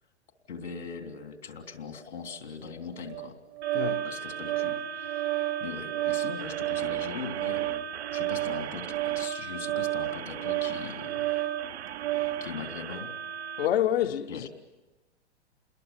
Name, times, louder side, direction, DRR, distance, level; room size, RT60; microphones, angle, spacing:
voice 1, 0.5-3.3 4.0-5.3 5.6-11.3 12.4-13.1 14.3-14.5, left 5 dB, 80° left, 3.4 m, -40 dB
Organ, 3.1-12.5, right 16 dB, 60° right, 1.1 m, -31 dB
sound 1, 3.6-13.7, right 8 dB, 75° right, 0.7 m, -39 dB
voice 2, 3.7-4.0 13.6-14.5, left 11 dB, 65° left, 0.9 m, -27 dB
28.5 x 21.5 x 7.3 m
figure-of-eight pair, 105°, 33 cm